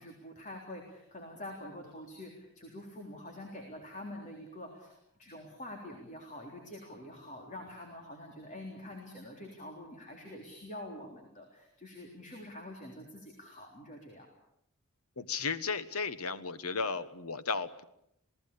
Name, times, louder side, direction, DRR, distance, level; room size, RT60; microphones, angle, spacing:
voice 1, 0.0-14.3, left 1 dB, 35° left, 2 dB, 3.6 m, -46 dB
voice 2, 15.2-17.8, left 4 dB, 85° left, 13 dB, 1.4 m, -34 dB
27.5 x 18.5 x 8.6 m, 0.76 s
head